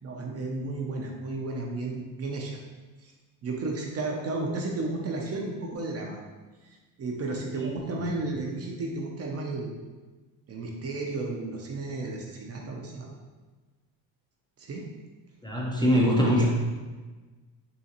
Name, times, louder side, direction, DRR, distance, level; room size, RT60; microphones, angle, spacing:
voice 1, 0.0-2.6 3.0-3.1 3.4-6.2 6.6-9.7 10.5-13.1 14.6-14.9 15.8-16.5, right 2 dB, 35° right, 0 dB, 0.5 m, -33 dB
voice 2, 15.4-16.5, equal, 10° left, -4 dB, 0.5 m, -22 dB
3.8 x 2.4 x 2.7 m, 1.3 s
supercardioid pair, 90°, 42 cm